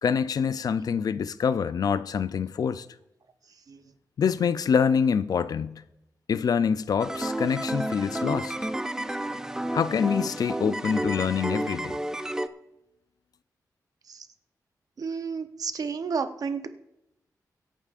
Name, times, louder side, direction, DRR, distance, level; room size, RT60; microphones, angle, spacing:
voice 1, 0.0-2.9 4.2-5.8 6.3-8.7 9.7-12.0, left 6 dB, 65° left, 0.4 m, -25 dB
sound 1, 7.0-12.5, right 1 dB, 10° right, 0.5 m, -31 dB
voice 2, 15.0-16.7, right 5 dB, 60° right, 0.8 m, -31 dB
23.5 x 8.6 x 2.5 m
wide cardioid pair, 115°, 7 cm